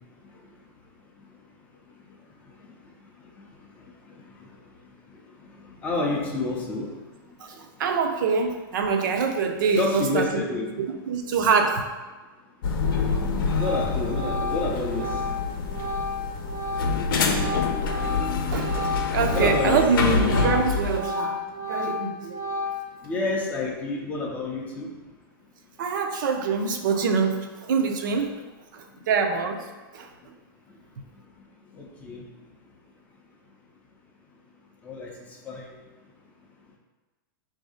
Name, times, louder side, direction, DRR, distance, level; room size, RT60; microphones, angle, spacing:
voice 1, 5.8-6.9 9.7-10.7 13.5-15.1 19.3-19.8 23.0-24.9 32.0-32.2 34.9-35.1 35.5-35.7, left 2 dB, 10° left, -1 dB, 0.4 m, -28 dB
voice 2, 7.4-10.4 10.8-11.8 18.5-18.8 19.1-22.4 25.8-28.3 28.7-29.6 29.9-30.1, right 5 dB, 55° right, 5 dB, 0.5 m, -25 dB
sound 1, 12.6-21.0, left 4 dB, 65° left, 0.6 m, -26 dB
Organ, 13.5-19.9 20.2-23.1, left 2 dB, 80° right, 1.0 m, -32 dB
3.9 x 2.7 x 4.8 m, 1.2 s
supercardioid pair, 180°, 12 cm